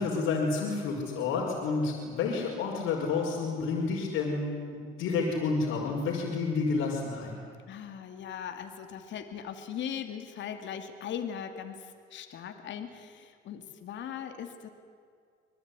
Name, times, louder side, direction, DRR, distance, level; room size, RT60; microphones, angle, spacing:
voice 1, 0.0-7.3, left 4 dB, 80° left, -4 dB, 5.3 m, -30 dB
voice 2, 7.7-11.8 12.1-14.7, left 8 dB, 60° left, 6 dB, 2.6 m, -39 dB
26.0 x 20.0 x 9.8 m, 2.2 s
cardioid pair, 100°, 21 cm